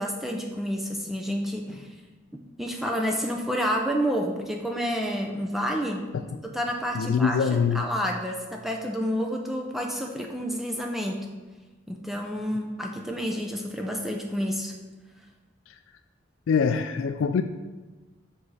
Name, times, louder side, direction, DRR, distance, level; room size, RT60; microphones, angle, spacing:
voice 1, 0.0-1.9 2.6-6.0 6.5-7.4 7.7-11.2 11.9-14.7, equal, ahead, 1 dB, 0.5 m, -29 dB
voice 2, 6.9-7.8 15.7-15.8 16.5-17.4, left 6 dB, 80° left, 8 dB, 0.3 m, -24 dB
6.2 x 5.0 x 4.1 m, 1.2 s
head